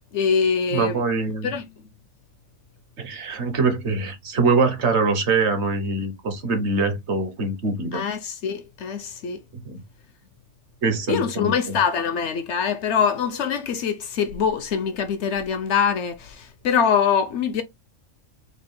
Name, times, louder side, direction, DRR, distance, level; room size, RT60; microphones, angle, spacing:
voice 1, 0.1-1.0 1.4-1.7 7.9-9.4 11.1-17.6, left 7 dB, 65° left, 0.8 m, -23 dB
voice 2, 0.7-1.5 3.0-8.0 9.7-9.8 10.8-11.8, right 3 dB, 60° right, 1.1 m, -23 dB
4.3 x 2.3 x 3.6 m
omnidirectional pair, 1.4 m